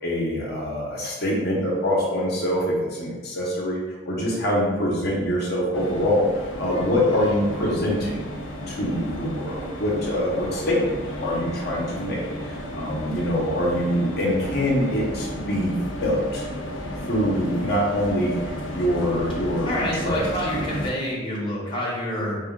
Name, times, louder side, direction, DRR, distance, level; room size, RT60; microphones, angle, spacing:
voice 1, 0.0-3.8 4.1-8.3 8.7-11.0 11.2-15.7 16.0-16.4 17.1-18.4 18.7-20.2, equal, 55° left, -4 dB, 1.0 m, -24 dB
sound 1, 5.7-20.9, equal, 75° left, 0.6 m, -33 dB
voice 2, 19.6-22.4, left 1 dB, 25° left, -6 dB, 1.0 m, -27 dB
4.9 x 2.4 x 3.6 m, 1.2 s
head